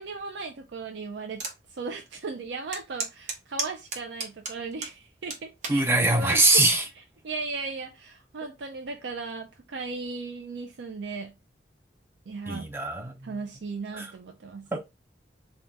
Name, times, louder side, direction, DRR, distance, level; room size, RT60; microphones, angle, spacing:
voice 1, 0.0-1.4 1.7-5.8 6.1-6.6 7.0-11.3 12.3-12.7 13.2-14.7, right 4 dB, 85° right, 0.5 m, -36 dB
sound 1, 1.4-1.6 2.1-2.2 2.7-5.0 5.3-5.8 6.5-6.8, right 3 dB, 45° right, 0.9 m, -33 dB
voice 2, 5.7-6.8 12.5-13.4 13.9-14.1 14.7-14.8, right 2 dB, 15° right, 0.6 m, -23 dB
3.9 x 2.3 x 3.5 m
head